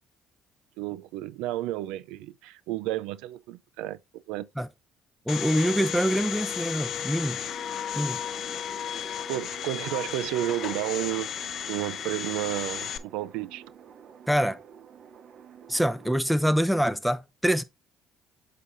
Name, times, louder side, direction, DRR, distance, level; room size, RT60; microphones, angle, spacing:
voice 1, 0.8-4.0 4.3-4.5 9.3-11.3 11.7-13.6, right 15 dB, 85° right, 0.3 m, -31 dB
Domestic sounds home sounds, 5.3-13.0, left 9 dB, 60° left, 0.6 m, -34 dB
voice 2, 5.3-7.4 8.0-8.2 14.3-14.6 15.7-17.6, equal, ahead, 0.7 m, -25 dB
sound 1, 7.2-16.2, right 7 dB, 60° right, 0.7 m, -50 dB
8.0 x 5.6 x 2.6 m
supercardioid pair, 75°, 0 cm